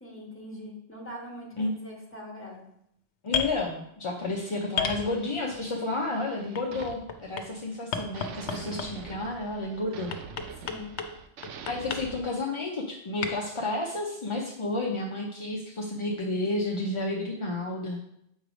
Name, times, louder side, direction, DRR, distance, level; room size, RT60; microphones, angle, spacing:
voice 1, 0.0-2.6 8.6-8.9 10.6-10.9, left 1 dB, 10° left, -3 dB, 1.4 m, -42 dB
voice 2, 3.2-10.1 11.7-18.0, left 2 dB, 35° left, -2 dB, 0.5 m, -31 dB
sound 1, 3.3-3.5 4.8-5.6 6.5-7.4 7.9-9.1 10.1-11.1 11.4-12.0 13.2-13.3, left 6 dB, 75° left, 0.9 m, -31 dB
sound 2, 4.2-7.8 8.1-12.2, right 6 dB, 90° right, 0.9 m, -46 dB
7.2 x 3.2 x 5.0 m, 0.75 s
omnidirectional pair, 1.2 m